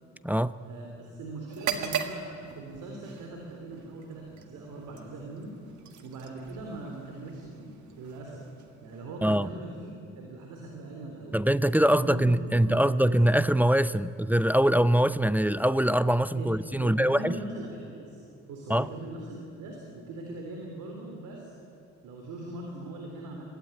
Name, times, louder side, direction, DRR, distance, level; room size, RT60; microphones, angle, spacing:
voice 1, 0.6-5.5 6.0-8.4 8.8-11.4 11.9-12.2 12.5-13.2 16.3-16.5 16.8-18.2 18.5-21.5 22.0-23.4, right 2 dB, 90° right, 0 dB, 3.4 m, -41 dB
sound 1, 1.5-9.3, right 7 dB, 70° right, 1.8 m, -40 dB
voice 2, 11.3-17.3 18.7-18.9, right 1 dB, 5° right, 14 dB, 0.5 m, -23 dB
22.5 x 16.5 x 9.9 m, 2.7 s
cardioid pair, 90°, 30 cm